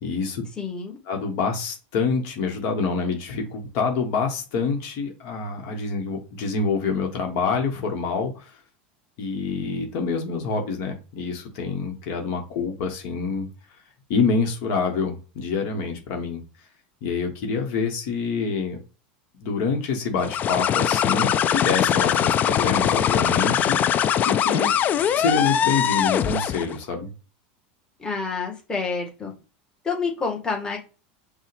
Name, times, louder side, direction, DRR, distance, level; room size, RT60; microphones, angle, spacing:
voice 1, 0.0-0.4 1.1-8.4 9.2-13.5 14.1-16.4 17.0-18.8 19.4-24.7 25.2-27.1, left 4 dB, 60° left, 3 dB, 1.4 m, -26 dB
voice 2, 0.6-1.0 28.0-29.3 29.8-30.8, left 4 dB, 15° left, -1 dB, 1.5 m, -28 dB
sound 1, 20.2-26.8, left 9 dB, 35° left, 0.4 m, -21 dB
5.4 x 2.4 x 3.3 m, 0.33 s
supercardioid pair, 120°, 5 cm